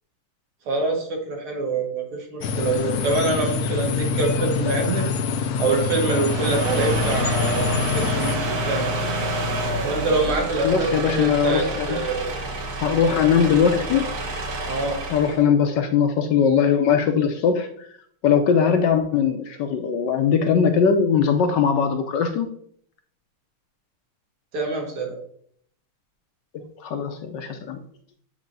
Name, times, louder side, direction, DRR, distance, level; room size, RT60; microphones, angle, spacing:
voice 1, 0.7-5.1 5.6-8.9 9.8-12.4 14.7-15.0 24.5-25.2, right 3 dB, 80° right, 1 dB, 2.4 m, -25 dB
sound 1, 2.4-8.4, left 5 dB, 90° left, 0.8 m, -25 dB
sound 2, 6.1-15.4, right 1 dB, 50° right, 1.5 m, -28 dB
voice 2, 10.6-12.0 12.8-14.1 15.1-17.9 18.2-22.5 26.5-27.8, left 7 dB, 70° left, 6 dB, 1.1 m, -20 dB
8.2 x 3.0 x 5.3 m, 0.63 s
omnidirectional pair, 2.3 m